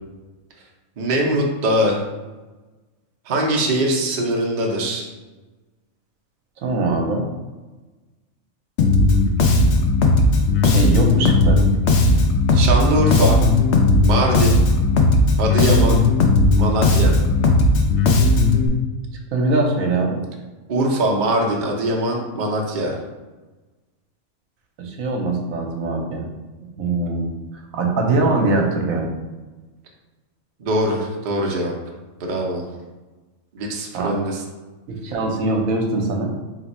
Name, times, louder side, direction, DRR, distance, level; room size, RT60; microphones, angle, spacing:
voice 1, 1.0-2.0 3.3-5.1 12.5-13.4 14.0-14.6 15.4-16.0 16.6-17.2 20.7-23.0 30.6-31.7 32.2-32.7 33.5-34.4, right 1 dB, 50° right, 0 dB, 0.6 m, -22 dB
voice 2, 6.6-7.2 10.6-11.6 19.3-20.2 24.8-26.3 26.8-27.3 27.7-29.1 33.9-34.3 34.9-36.3, right 2 dB, 75° right, 1 dB, 1.1 m, -22 dB
Bass guitar, 8.8-18.7, left 2 dB, 65° left, 0.8 m, -16 dB
3.3 x 3.0 x 4.1 m, 1.2 s
omnidirectional pair, 1.4 m